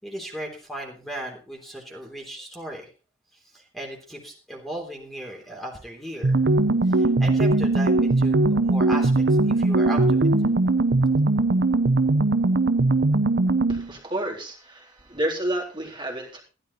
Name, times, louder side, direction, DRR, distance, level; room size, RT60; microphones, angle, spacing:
voice 1, 0.0-2.9 3.3-6.4 6.8-10.3, right 1 dB, ahead, 0 dB, 3.3 m, -36 dB
sound 1, 6.2-13.9, right 2 dB, 60° right, 0.7 m, -20 dB
voice 2, 13.7-16.4, right 1 dB, 25° right, -2 dB, 3.7 m, -30 dB
15.5 x 11.5 x 4.2 m, 0.35 s
head